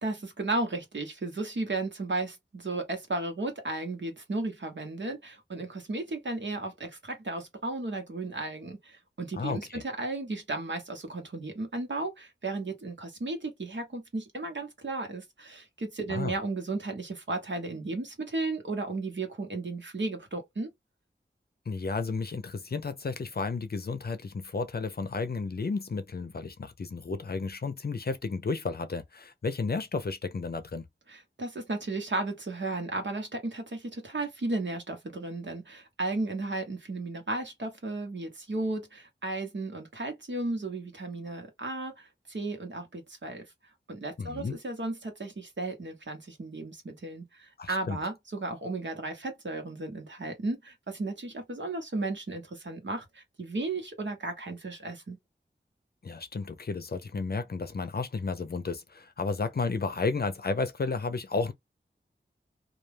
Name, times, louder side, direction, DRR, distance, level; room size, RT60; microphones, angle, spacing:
voice 1, 0.0-20.7 31.1-43.4 43.9-55.2, right 2 dB, 70° right, 1.0 m, -34 dB
voice 2, 9.3-9.8 16.1-16.4 21.7-30.9 44.2-44.6 47.6-48.0 56.0-61.5, left 4 dB, 55° left, 0.5 m, -32 dB
2.4 x 2.2 x 3.2 m
wide cardioid pair, 55°, 20 cm